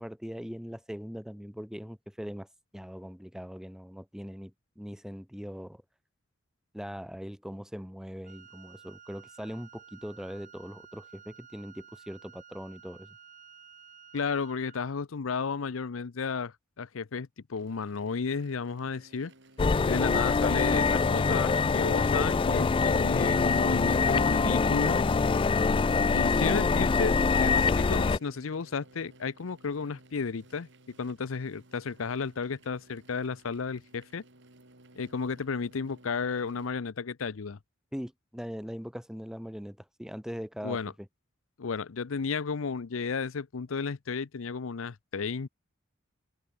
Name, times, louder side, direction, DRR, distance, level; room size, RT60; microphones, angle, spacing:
voice 1, 0.0-2.5 2.7-5.8 6.7-13.2 26.3-26.6 37.9-41.1, equal, 5° right, 1.4 m, -41 dB
Wind instrument woodwind instrument, 8.2-14.9, right 7 dB, 40° right, 5.6 m, -53 dB
voice 2, 14.1-19.3 19.8-25.0 26.1-30.7 31.0-34.2 35.0-37.6 40.6-40.9 41.6-45.5, left 5 dB, 80° left, 0.6 m, -33 dB
sound 1, 17.5-36.7, right 2 dB, 60° right, 6.2 m, -57 dB
sound 2, 19.6-28.2, left 4 dB, 25° left, 0.3 m, -24 dB
head